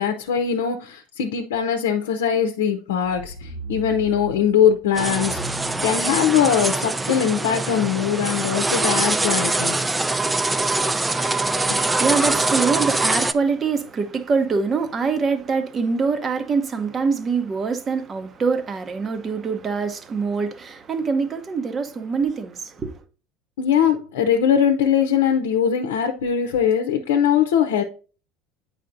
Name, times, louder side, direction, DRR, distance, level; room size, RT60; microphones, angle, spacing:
voice 1, 0.0-9.8 11.7-11.8 23.6-27.8, left 8 dB, 80° left, 0.7 m, -21 dB
sound 1, 3.0-6.4 7.3-7.4, equal, 90° right, 1.5 m, -37 dB
sound 2, 4.9-13.3, right 2 dB, 15° right, 0.4 m, -23 dB
voice 2, 11.6-23.0, right 5 dB, 35° right, 0.9 m, -24 dB
8.4 x 5.0 x 2.6 m
hypercardioid pair, 80°, 0 cm